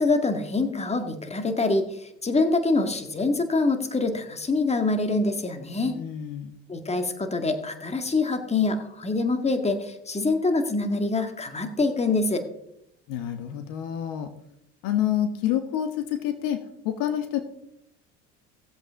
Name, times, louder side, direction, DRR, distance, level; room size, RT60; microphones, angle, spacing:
voice 1, 0.0-6.0 6.7-12.4, left 3 dB, 20° left, 6 dB, 1.9 m, -25 dB
voice 2, 5.8-6.6 13.1-14.3 14.8-17.4, left 10 dB, 65° left, 9 dB, 1.2 m, -28 dB
17.5 x 7.8 x 3.6 m, 0.79 s
hypercardioid pair, 75°, 36 cm